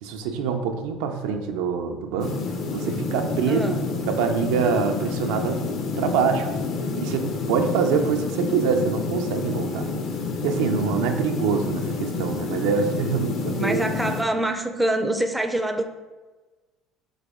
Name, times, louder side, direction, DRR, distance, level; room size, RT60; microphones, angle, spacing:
voice 1, 0.0-2.4 2.7-3.8 4.1-5.6 6.0-6.5 7.0-9.9 10.4-13.8, right 6 dB, 90° right, 5 dB, 0.4 m, -25 dB
sound 1, 2.2-14.2, left 4 dB, 60° left, 0.6 m, -29 dB
voice 2, 3.5-3.8 13.6-15.8, right 1 dB, 5° right, 6 dB, 0.4 m, -25 dB
4.0 x 3.4 x 3.5 m, 1.2 s
cardioid pair, 115°, 0 cm